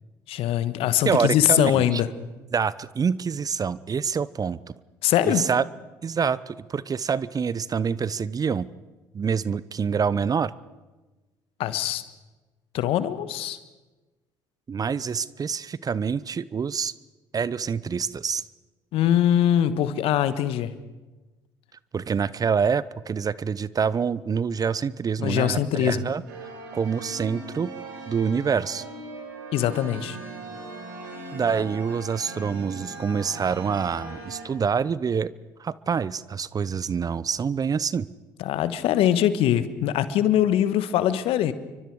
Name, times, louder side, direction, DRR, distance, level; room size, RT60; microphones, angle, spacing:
voice 1, 0.3-2.1 5.0-5.5 11.6-12.0 12.7-13.6 18.9-20.7 25.2-26.1 29.5-30.2 38.4-41.5, left 11 dB, 65° left, 13 dB, 1.4 m, -22 dB
voice 2, 1.0-2.0 2.5-4.6 5.2-5.6 6.0-8.7 9.1-10.5 14.7-16.9 17.3-18.4 21.9-27.7 28.1-28.8 31.3-35.3 35.6-38.1, right 6 dB, 35° right, 19 dB, 0.8 m, -26 dB
sound 1, 26.3-34.4, right 2 dB, 85° right, 6.3 m, -39 dB
28.5 x 24.5 x 4.9 m, 1.2 s
hypercardioid pair, 55°, 10 cm